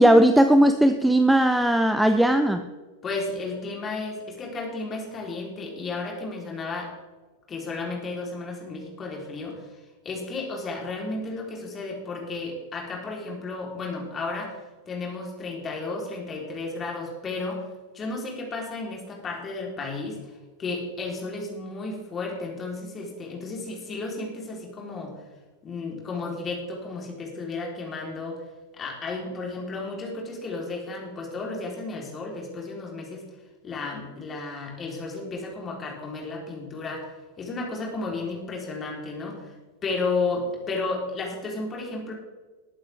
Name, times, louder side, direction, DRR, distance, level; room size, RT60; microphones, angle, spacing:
voice 1, 0.0-2.6, right 1 dB, 5° right, 8 dB, 0.7 m, -18 dB
voice 2, 3.0-7.0 7.5-9.7 10.0-17.7 17.9-20.3 20.6-25.2 25.6-28.4 28.8-33.3 33.6-37.1 37.4-39.5 39.8-42.1, left 3 dB, 20° left, -1 dB, 3.9 m, -33 dB
20.0 x 8.8 x 3.6 m, 1.3 s
figure-of-eight pair, 90°, 0 cm